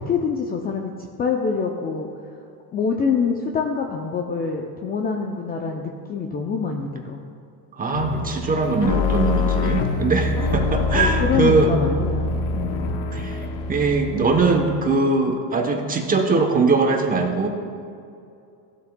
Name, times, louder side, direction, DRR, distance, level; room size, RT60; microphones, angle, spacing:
voice 1, 0.1-0.9 1.2-2.1 2.7-7.2 10.9-12.9, left 5 dB, 20° left, 2 dB, 0.4 m, -25 dB
voice 2, 7.8-11.7 13.1-13.4 13.7-17.5, right 3 dB, 20° right, 3 dB, 0.9 m, -21 dB
sound 1, 7.9-14.9, left 4 dB, 65° left, 1.0 m, -25 dB
14.5 x 7.9 x 2.2 m, 2.5 s
supercardioid pair, 125°, 47 cm